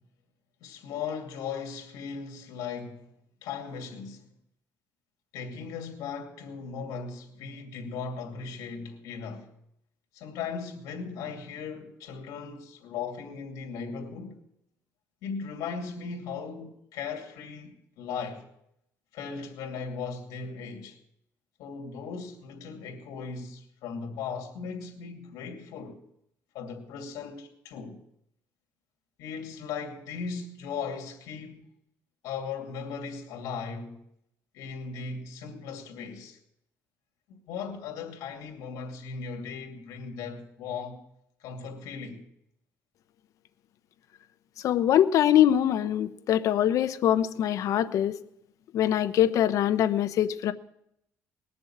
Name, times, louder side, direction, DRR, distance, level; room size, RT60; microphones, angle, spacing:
voice 1, 0.6-3.1 3.4-4.3 5.3-9.5 10.1-14.4 15.2-18.5 19.1-21.0 21.6-26.0 26.5-28.0 29.2-31.7 32.2-34.0 34.5-36.4 37.5-41.0 41.4-42.2, left 5 dB, 85° left, 2.6 m, -37 dB
voice 2, 44.6-48.2 48.7-50.5, left 11 dB, 65° left, 0.9 m, -23 dB
20.0 x 7.0 x 8.7 m
cardioid pair, 125°, 6 cm